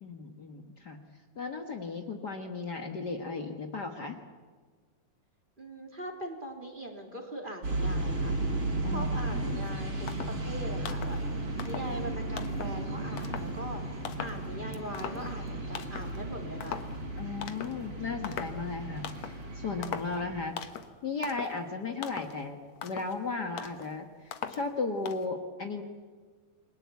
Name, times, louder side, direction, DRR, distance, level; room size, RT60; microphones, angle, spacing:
voice 1, 0.0-1.0 1.3-4.2 8.8-9.8 15.1-15.3 17.2-20.6 21.0-25.8, left 4 dB, 85° left, 4 dB, 0.9 m, -36 dB
voice 2, 5.6-8.3 8.9-11.2 11.6-13.8 14.2-16.8, right 1 dB, 15° right, 2 dB, 2.8 m, -41 dB
sound 1, 7.6-20.5, right 2 dB, 40° right, 5.5 m, -34 dB
sound 2, 9.6-9.7 10.1-10.5 10.8-11.2 11.6-12.0 12.4-12.8 13.2-13.6 14.0-14.5 14.7-15.5 15.7-16.2 16.6-17.0 17.4-17.9 18.2-18.6 19.0-19.4 19.8-20.2 20.6-20.9 21.2-21.6 22.0-22.4 22.8-23.2 23.6-23.9 24.3-24.7 25.1-25.3, left 8 dB, 60° left, 2.1 m, -40 dB
29.0 x 22.0 x 8.4 m, 1.5 s
omnidirectional pair, 4.3 m